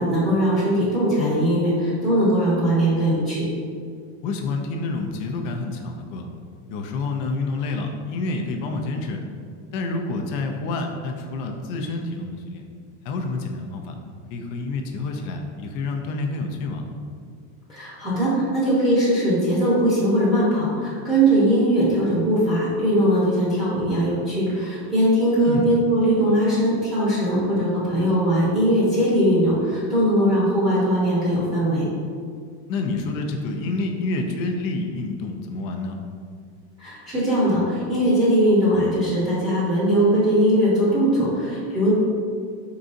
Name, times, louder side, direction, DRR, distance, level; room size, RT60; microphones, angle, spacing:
voice 1, 0.0-3.4 17.7-31.8 36.8-41.9, right 1 dB, 10° right, -10 dB, 0.8 m, -20 dB
voice 2, 4.2-6.3 6.7-9.2 9.7-12.6 13.0-14.0 14.3-16.9 25.4-25.7 32.7-36.0, left 3 dB, 45° left, 3 dB, 0.5 m, -28 dB
4.6 x 3.9 x 2.5 m, 2.2 s
cardioid pair, 155°, 46 cm